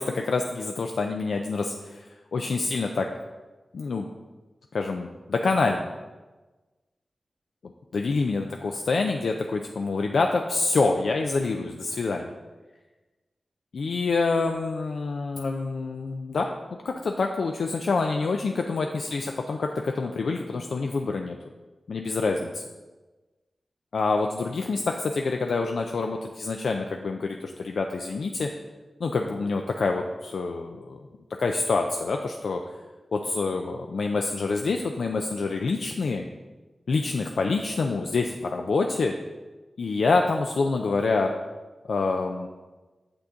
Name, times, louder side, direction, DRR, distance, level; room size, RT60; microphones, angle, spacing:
voice 1, 0.0-3.1 3.7-4.1 4.7-5.8 7.6-12.3 13.7-16.5 16.8-21.4 21.9-22.6 23.9-28.5 29.0-31.1 31.4-32.6 33.1-36.2 36.9-39.1 39.8-41.3 41.9-42.5, left 3 dB, 85° left, 3 dB, 0.4 m, -26 dB
8.2 x 5.9 x 3.8 m, 1.2 s
wide cardioid pair, 70°, 0 cm